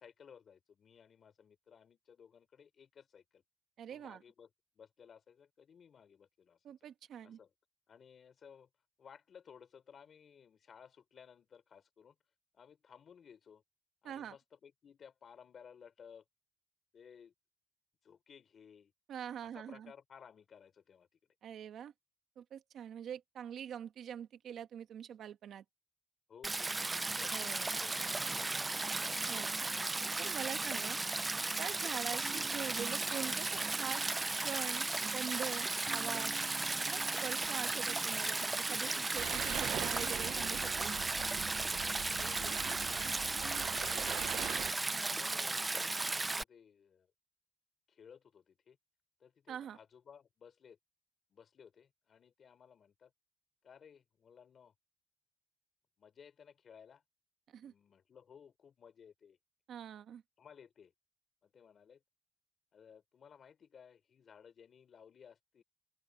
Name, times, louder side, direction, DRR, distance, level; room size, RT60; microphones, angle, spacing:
voice 1, 0.0-3.4 3.9-6.6 7.2-7.5 7.9-8.7 9.0-12.2 12.5-13.6 14.0-16.2 16.9-17.3 18.0-18.9 19.4-21.3 26.3-27.5 27.8-28.8 42.2-42.6 42.9-44.2 44.9-47.1 47.9-48.8 49.2-50.8 51.3-53.1 53.6-54.7 56.0-57.0 57.6-59.4 60.4-60.9 61.4-62.0 62.7-65.6, left 7 dB, 45° left, 4.4 m, -58 dB
voice 2, 3.8-4.2 6.6-7.4 14.0-14.3 19.1-19.9 21.4-21.9 22.4-25.6 27.3-27.7 29.3-29.5 30.2-31.0 31.6-36.4 36.8-40.9 49.5-49.8 57.5-57.7 59.7-60.2, right 9 dB, 70° right, 1.4 m, -44 dB
Stream, 26.4-46.4, right 2 dB, 15° right, 0.5 m, -35 dB
sound 1, 32.2-43.7, right 6 dB, 40° right, 3.2 m, -53 dB
sound 2, 39.2-44.7, right 11 dB, 90° right, 0.6 m, -42 dB
open air
cardioid pair, 160°, 0 cm